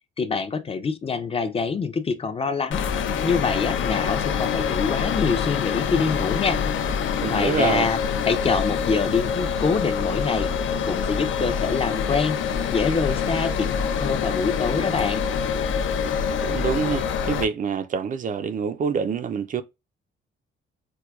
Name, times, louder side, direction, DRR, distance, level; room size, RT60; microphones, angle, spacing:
voice 1, 0.2-2.8 3.2-6.6 7.3-8.0 8.2-12.4 12.7-15.2, left 5 dB, 30° left, 0.5 m, -25 dB
sound 1, 2.7-17.4, left 7 dB, 75° left, 0.5 m, -25 dB
voice 2, 7.2-7.9 16.3-19.6, right 6 dB, 40° right, 0.4 m, -26 dB
4.6 x 2.2 x 2.3 m
cardioid pair, 90°, 20 cm